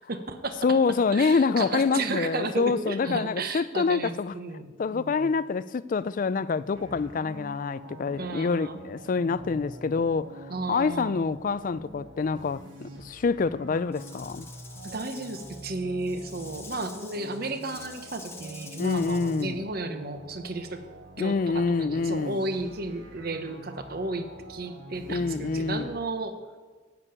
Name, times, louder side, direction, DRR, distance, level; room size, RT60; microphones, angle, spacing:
voice 1, 0.0-0.8 1.1-5.3 8.1-8.8 10.5-11.2 14.8-20.8 21.2-26.3, right 2 dB, 50° right, 1.0 m, -33 dB
voice 2, 0.6-4.3 4.8-10.3 10.7-14.5 18.8-19.6 21.2-22.4 25.1-25.9, left 4 dB, 45° left, 0.3 m, -26 dB
sound 1, 6.7-25.9, right 1 dB, 75° right, 1.4 m, -45 dB
Rattle / Rattle (instrument), 13.9-19.5, left 4 dB, 15° left, 0.9 m, -47 dB
9.7 x 6.8 x 8.8 m
head